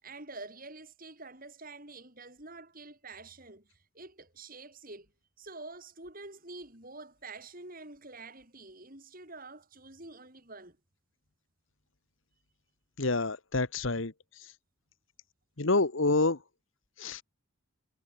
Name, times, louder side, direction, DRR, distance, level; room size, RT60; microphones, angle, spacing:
voice 1, 0.0-5.1 5.4-10.8, right 3 dB, 40° right, 6.9 m, -47 dB
voice 2, 13.0-14.1 15.6-16.4 17.0-17.2, left 3 dB, 65° left, 1.4 m, -27 dB
head